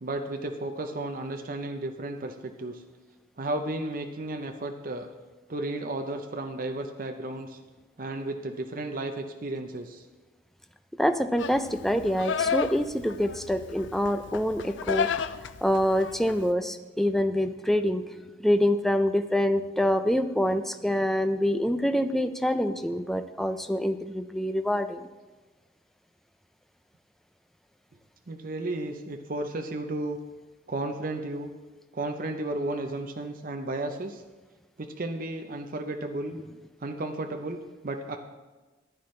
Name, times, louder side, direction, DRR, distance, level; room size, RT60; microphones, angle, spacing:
voice 1, 0.0-2.8 3.4-5.1 5.5-7.6 8.0-10.0 28.3-30.2 30.7-31.5 31.9-34.2 34.8-36.4 36.8-38.2, right 2 dB, 45° right, 4 dB, 0.6 m, -33 dB
voice 2, 11.0-15.1 15.6-18.0 18.4-25.1, equal, ahead, 8 dB, 0.4 m, -26 dB
Livestock farm animals working animals, 11.4-16.5, left 6 dB, 75° left, 0.4 m, -32 dB
14.5 x 10.5 x 3.2 m, 1.2 s
head